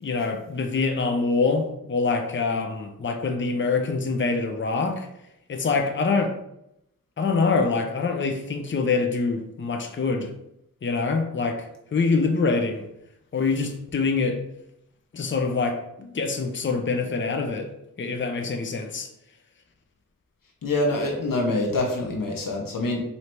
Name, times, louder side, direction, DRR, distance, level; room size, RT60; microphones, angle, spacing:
voice 1, 0.0-5.1 5.5-6.3 7.2-10.3 10.8-12.8 13.3-14.4 15.1-17.7 18.0-19.1, left 4 dB, 35° left, 5 dB, 0.5 m, -25 dB
voice 2, 20.6-23.0, left 2 dB, 80° left, 0 dB, 0.8 m, -25 dB
3.2 x 2.8 x 4.4 m, 0.81 s
wide cardioid pair, 65°, 33 cm